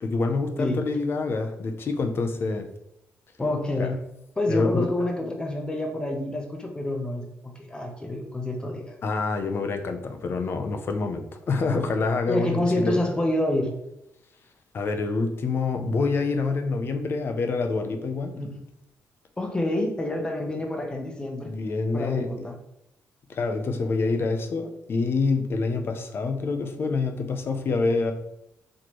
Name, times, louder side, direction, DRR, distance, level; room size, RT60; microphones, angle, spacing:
voice 1, 0.0-2.7 3.8-3.9 4.5-4.9 9.0-13.0 14.7-18.4 21.4-22.4 23.3-28.1, left 3 dB, 45° left, 6 dB, 0.5 m, -26 dB
voice 2, 3.4-4.0 4.4-9.0 12.3-13.7 18.4-18.6 19.4-21.5 21.9-22.6, left 1 dB, 15° left, 2 dB, 0.8 m, -28 dB
4.2 x 3.1 x 3.0 m, 0.84 s
cardioid pair, 125°, 5 cm